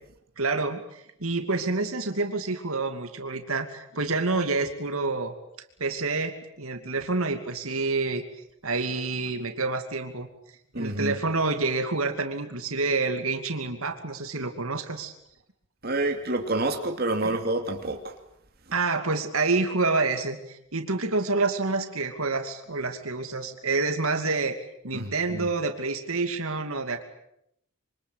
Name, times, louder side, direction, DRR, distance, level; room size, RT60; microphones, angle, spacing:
voice 1, 0.4-5.3 5.8-8.2 8.6-10.3 10.8-15.1 17.2-17.4 18.7-24.5 24.8-27.0, right 3 dB, 75° right, 6 dB, 2.7 m, -28 dB
voice 2, 10.7-11.2 15.8-18.1 24.9-25.5, right 2 dB, 45° right, 4 dB, 2.7 m, -28 dB
26.0 x 25.5 x 8.3 m, 0.75 s
head